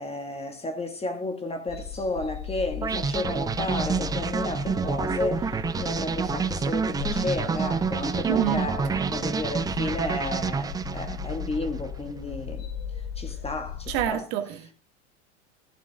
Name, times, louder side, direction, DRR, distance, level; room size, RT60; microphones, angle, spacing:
voice 1, 0.0-12.7 13.2-14.2, left 2 dB, 15° left, 2.1 m, -32 dB
sound 1, 1.7-14.0, left 8 dB, 60° left, 5.6 m, -37 dB
sound 2, 2.8-11.9, right 5 dB, 10° right, 0.4 m, -28 dB
voice 2, 8.2-8.6 13.9-14.7, right 11 dB, 60° right, 1.7 m, -27 dB
14.5 x 7.0 x 3.7 m
hypercardioid pair, 90°, 36 cm